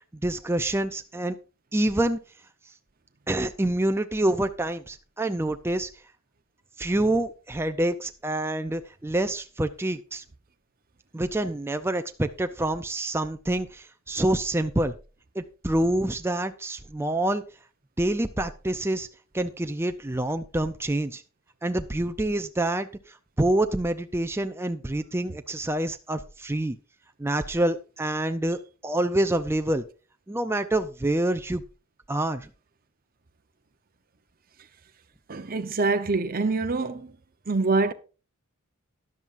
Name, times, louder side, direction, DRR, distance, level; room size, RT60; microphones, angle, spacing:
voice 1, 0.2-1.4 1.7-2.2 3.3-5.9 6.8-10.2 11.1-14.9 15.3-17.4 18.0-19.1 19.3-21.2 21.6-22.9 23.4-26.8 27.2-29.8 30.3-31.6 32.1-32.5, right 1 dB, 10° right, 0.5 m, -27 dB
voice 2, 35.3-37.2 37.5-37.9, right 3 dB, 40° right, 0.8 m, -25 dB
13.0 x 11.0 x 2.5 m
head